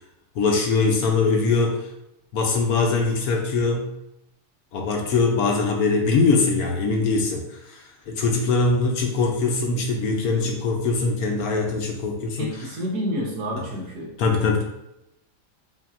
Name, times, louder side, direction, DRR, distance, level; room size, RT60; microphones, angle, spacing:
voice 1, 0.4-1.8 2.3-3.9 4.7-12.5 14.2-14.6, left 3 dB, 70° left, 2 dB, 1.0 m, -22 dB
voice 2, 12.4-14.1, equal, 75° right, -3 dB, 1.5 m, -29 dB
5.1 x 2.7 x 2.4 m, 0.87 s
omnidirectional pair, 1.8 m